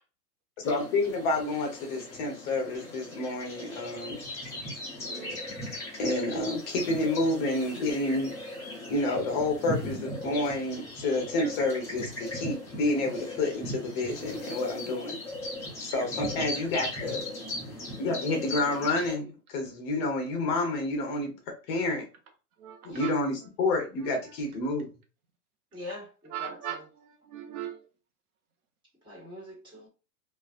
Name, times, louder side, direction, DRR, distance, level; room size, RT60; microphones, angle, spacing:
voice 1, 0.6-4.2 6.0-8.3 8.9-15.2 15.8-17.2 18.0-21.3 21.7-22.1 22.8-24.9, left 2 dB, 35° left, 0.9 m, -29 dB
sound 1, 0.6-19.2, left 1 dB, 5° left, 0.4 m, -38 dB
voice 2, 5.1-5.4 15.7-15.8 22.6-23.1 24.0-24.3 26.3-27.8, right 10 dB, 65° right, 0.9 m, -40 dB
voice 3, 25.7-26.8 29.0-29.9, left 2 dB, 10° right, 1.6 m, -43 dB
3.2 x 2.5 x 2.4 m
supercardioid pair, 150°, 47 cm